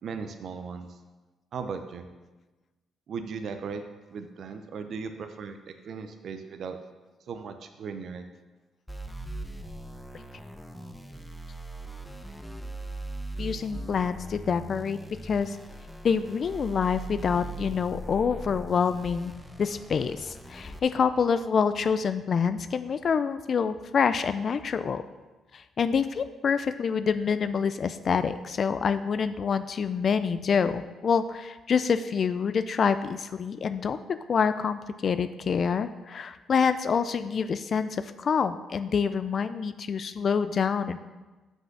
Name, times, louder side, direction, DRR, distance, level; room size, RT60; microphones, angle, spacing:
voice 1, 0.0-0.9 1.5-2.1 3.1-3.8 4.1-5.6 5.9-6.8 7.3-8.3, right 5 dB, 60° right, 7 dB, 0.6 m, -37 dB
sound 1, 8.9-20.8, right 1 dB, ahead, 0.7 m, -40 dB
voice 2, 13.4-15.6 16.0-19.3 19.6-25.0 25.5-41.0, left 6 dB, 50° left, 11 dB, 0.3 m, -27 dB
6.0 x 5.4 x 5.9 m, 1.2 s
cardioid pair, 90°, 0 cm